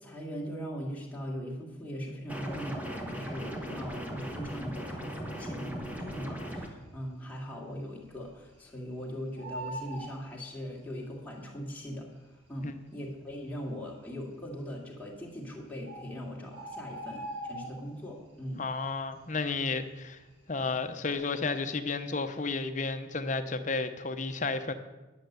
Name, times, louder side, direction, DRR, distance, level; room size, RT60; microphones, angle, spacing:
voice 1, 0.0-18.6, equal, 10° left, -3 dB, 2.1 m, -40 dB
sound 1, 2.3-6.7, right 1 dB, 10° right, 1.1 m, -38 dB
Bird, 6.6-7.0 7.4-7.5 7.7-8.9 9.2-11.0 11.9-12.0 12.6-12.7 12.9-13.0 13.7-14.1 15.1-15.2 15.5-15.6 15.9-18.1 18.5-18.8 19.1-20.5 20.8-21.1, right 1 dB, 80° right, 4.7 m, -42 dB
voice 2, 18.6-20.2 20.5-24.7, left 3 dB, 40° left, 9 dB, 0.7 m, -32 dB
10.5 x 6.5 x 8.0 m, 1.1 s
head